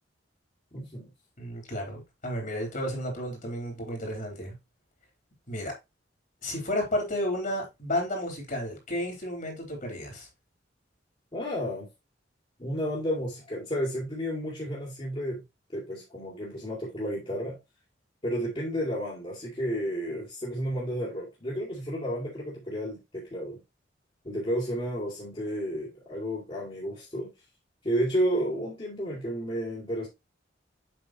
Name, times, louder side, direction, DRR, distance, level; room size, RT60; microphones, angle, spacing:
voice 1, 0.7-1.1 11.3-11.9 12.6-15.4 15.7-17.6 18.2-23.6 24.2-27.3 27.8-30.1, equal, 30° left, 2.6 m, -32 dB
voice 2, 1.4-4.5 5.5-5.7 6.4-10.3, left 1 dB, 45° left, 3.6 m, -32 dB
7.8 x 5.9 x 3.0 m
head